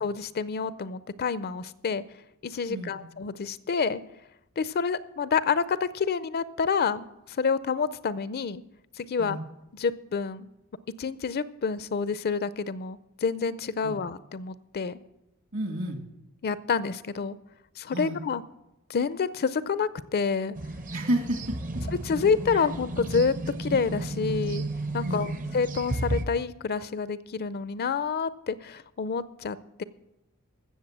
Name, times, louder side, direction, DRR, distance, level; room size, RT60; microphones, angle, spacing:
voice 1, 0.0-2.0 2.4-4.0 4.6-8.6 9.0-9.4 9.7-10.5 11.0-15.0 16.4-17.4 17.8-18.4 18.9-20.6 22.0-23.3 23.6-24.6 24.9-29.8, left 5 dB, 45° left, 16 dB, 0.5 m, -28 dB
voice 2, 15.5-16.0 17.9-18.2 20.9-21.8 22.5-22.6 25.0-25.4, right 1 dB, 65° right, 4 dB, 2.3 m, -31 dB
sound 1, 20.6-26.3, right 2 dB, 40° right, 0.8 m, -33 dB
15.5 x 6.8 x 7.4 m, 0.90 s
head